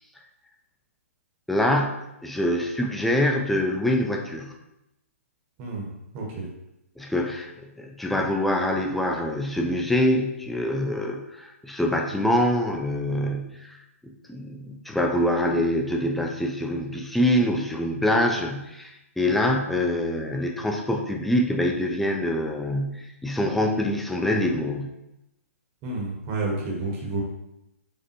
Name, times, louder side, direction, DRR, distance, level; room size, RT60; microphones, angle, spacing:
voice 1, 1.5-4.5 7.0-13.8 14.0-24.9, left 1 dB, ahead, 2 dB, 0.3 m, -25 dB
voice 2, 6.1-6.5 25.8-27.2, right 2 dB, 30° right, -2 dB, 0.9 m, -30 dB
5.1 x 2.1 x 2.9 m, 0.88 s
hypercardioid pair, 135°, 8 cm